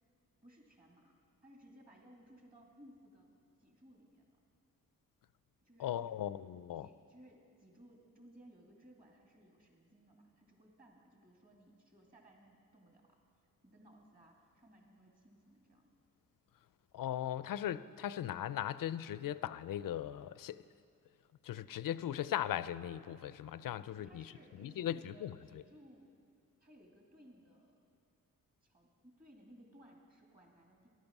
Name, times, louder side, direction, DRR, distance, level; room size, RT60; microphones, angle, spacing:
voice 1, 0.4-3.3 3.6-4.4 5.6-6.3 6.8-13.2 13.6-15.9 23.9-26.1 26.6-27.7 28.6-30.9, equal, 25° right, 0 dB, 2.7 m, -61 dB
voice 2, 5.8-6.9 16.9-20.6 21.4-24.3 24.6-25.6, left 11 dB, 70° left, 15 dB, 0.5 m, -38 dB
14.0 x 11.5 x 6.0 m, 2.5 s
cardioid pair, 90°, 34 cm